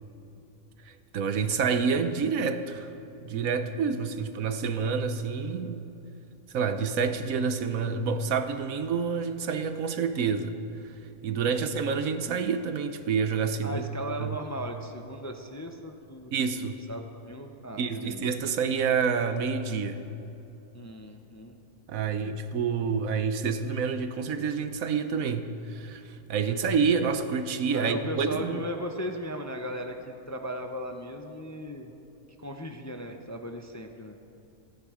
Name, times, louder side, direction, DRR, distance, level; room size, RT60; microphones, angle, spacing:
voice 1, 0.9-2.9 3.2-5.9 6.5-10.6 10.8-10.9 11.2-13.8 14.2-14.4 16.3-16.8 17.8-20.1 21.9-28.6, right 5 dB, 70° right, 9 dB, 1.3 m, -28 dB
voice 2, 11.4-11.7 13.6-18.2 20.7-21.6 22.0-22.4 27.7-31.9 32.4-34.1, equal, 15° left, 4 dB, 0.7 m, -37 dB
27.5 x 9.4 x 5.0 m, 2.9 s
omnidirectional pair, 1.5 m